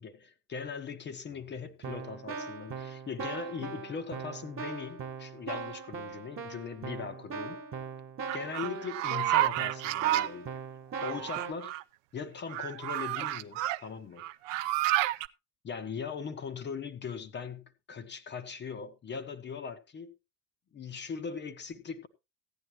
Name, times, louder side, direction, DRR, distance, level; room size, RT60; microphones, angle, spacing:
voice 1, 0.0-7.6 8.3-10.5 11.0-11.7 12.1-14.2 15.6-20.1 20.7-22.1, left 6 dB, 20° left, 0.9 m, -40 dB
Keyboard (musical), 1.3-1.5 1.8-11.5, right 5 dB, 25° right, 1.5 m, -40 dB
sound 1, 8.3-10.3 11.0-11.8 12.5-13.8 14.2-15.3, right 15 dB, 55° right, 0.6 m, -30 dB
15.5 x 9.9 x 3.0 m
figure-of-eight pair, 75°, 48 cm